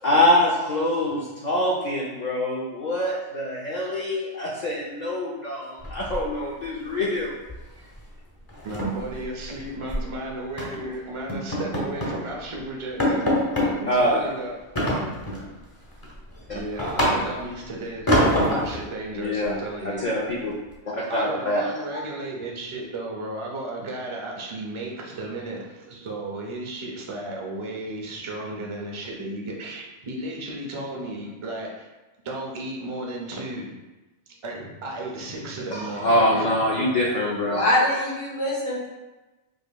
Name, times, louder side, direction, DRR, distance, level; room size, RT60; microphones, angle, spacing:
voice 1, 0.0-7.4 13.5-14.2 16.5-16.6 19.1-19.6 19.8-20.5 20.9-21.6 21.9-22.0 35.7-37.6, left 1 dB, 55° left, -4 dB, 0.5 m, -24 dB
sound 1, 5.8-6.6 6.9-7.2 7.5-7.7 8.0-8.1 8.5-10.1 10.6-10.8 11.3-12.2 12.6-12.7 13.0-13.7 14.8-15.5 15.9-17.5 18.1-18.8, equal, 20° left, 0.8 m, -25 dB
voice 2, 8.6-13.5 13.8-14.6 16.5-20.1 21.1-31.9 32.2-33.8 34.3-37.2, right 2 dB, 35° right, -1 dB, 0.5 m, -34 dB
voice 3, 37.4-38.9, left 1 dB, 85° left, -6 dB, 1.6 m, -23 dB
5.1 x 2.9 x 2.2 m, 1.1 s
omnidirectional pair, 1.3 m